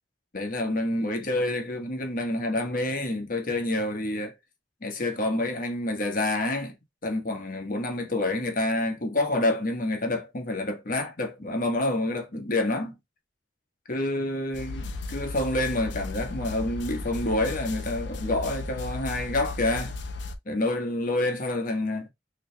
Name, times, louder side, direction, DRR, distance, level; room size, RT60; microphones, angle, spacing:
voice 1, 0.3-4.3 4.8-6.7 7.0-12.9 13.9-20.0 20.5-22.1, left 1 dB, 50° left, 1.2 m, -28 dB
sound 1, 14.5-20.4, left 3 dB, 75° left, 0.7 m, -35 dB
4.8 x 3.1 x 2.2 m
head